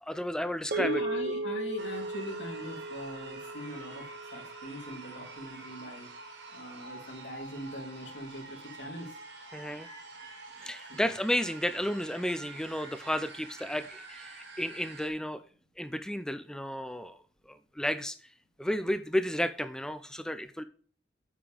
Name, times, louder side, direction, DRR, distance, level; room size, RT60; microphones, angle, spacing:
voice 1, 0.0-1.0 9.5-9.9 10.6-15.4 15.8-17.2 17.5-18.2 18.6-20.6, equal, 5° left, 11 dB, 0.4 m, -32 dB
sound 1, 0.7-5.2, right 2 dB, 60° right, 1.0 m, -36 dB
voice 2, 0.8-6.1 6.5-9.1 10.9-11.1, equal, 75° left, 0 dB, 2.9 m, -41 dB
sound 2, 1.8-15.1, right 3 dB, 75° right, 1.7 m, -47 dB
8.9 x 6.9 x 3.4 m, 0.42 s
head